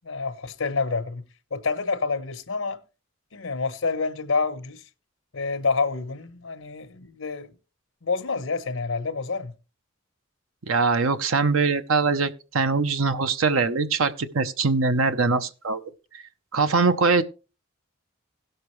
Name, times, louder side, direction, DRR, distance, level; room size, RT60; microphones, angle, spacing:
voice 1, 0.0-1.2 1.5-2.8 3.3-4.8 5.3-7.5 8.0-9.5, left 4 dB, 80° left, 1.1 m, -28 dB
voice 2, 10.7-15.8 16.1-16.2 16.5-17.2, right 4 dB, 85° right, 0.8 m, -22 dB
17.5 x 6.6 x 3.2 m
head